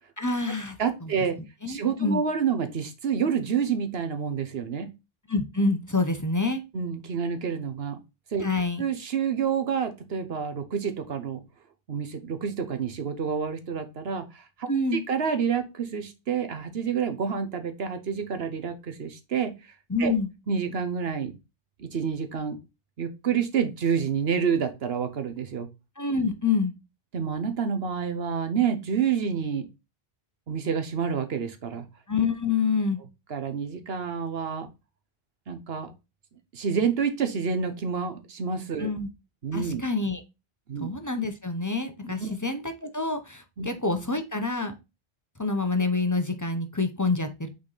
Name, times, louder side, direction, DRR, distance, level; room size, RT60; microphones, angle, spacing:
voice 1, 0.2-1.1 1.6-2.2 5.3-6.6 8.4-8.8 14.7-15.0 19.9-20.3 26.0-26.7 32.1-33.0 38.8-39.1 39.5-40.2 40.8-44.7 45.4-47.5, left 3 dB, 20° left, 7 dB, 0.7 m, -27 dB
voice 2, 0.8-1.4 1.7-4.9 6.7-8.0 8.3-8.4 8.8-11.4 11.9-19.7 20.0-20.1 20.5-21.4 21.8-22.6 23.0-25.7 27.1-29.7 30.5-31.9 33.3-34.7 35.5-35.9 36.5-38.9 39.4-39.8 40.7-40.9 42.2-42.3 43.6-43.7, right 6 dB, 75° right, 9 dB, 1.2 m, -28 dB
5.9 x 4.2 x 4.0 m, 0.25 s
omnidirectional pair, 1.0 m